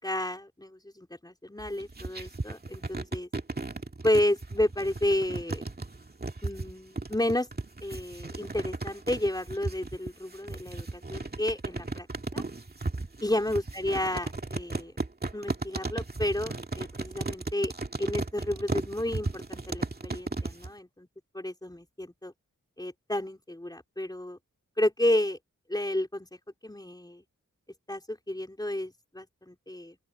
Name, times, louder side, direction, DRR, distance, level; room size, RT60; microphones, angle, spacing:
voice 1, 0.0-3.3 4.0-5.6 6.4-7.5 7.8-12.1 12.3-12.4 13.2-14.9 15.3-17.7 18.0-21.1 21.3-22.3 22.8-24.4 24.8-25.4 25.7-27.2 27.9-30.0, left 1 dB, 10° left, 4.0 m, -31 dB
sound 1, 1.6-20.7, right 3 dB, 30° right, 2.0 m, -35 dB
open air
wide cardioid pair, 105°, 31 cm